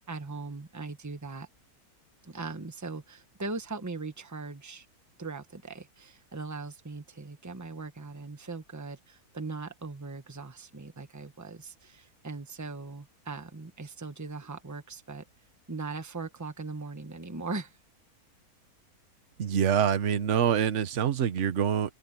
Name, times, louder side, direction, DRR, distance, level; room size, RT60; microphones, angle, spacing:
voice 1, 0.0-1.5 2.2-4.9 5.2-15.2 15.7-17.8, right 3 dB, 10° right, 1.2 m, -39 dB
voice 2, 19.4-21.9, right 8 dB, 55° right, 1.3 m, -25 dB
omnidirectional pair, 1.6 m